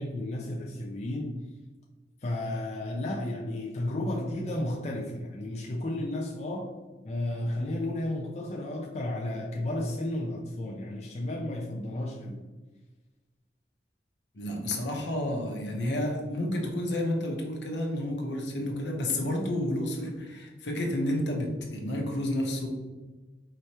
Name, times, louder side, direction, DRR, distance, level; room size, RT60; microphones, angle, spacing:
voice 1, 0.0-1.4 2.2-6.7 7.0-12.4, left 1 dB, 40° left, 0 dB, 0.4 m, -33 dB
voice 2, 14.3-22.7, left 1 dB, 80° left, 0 dB, 1.0 m, -30 dB
4.9 x 3.2 x 2.8 m, 1.2 s
head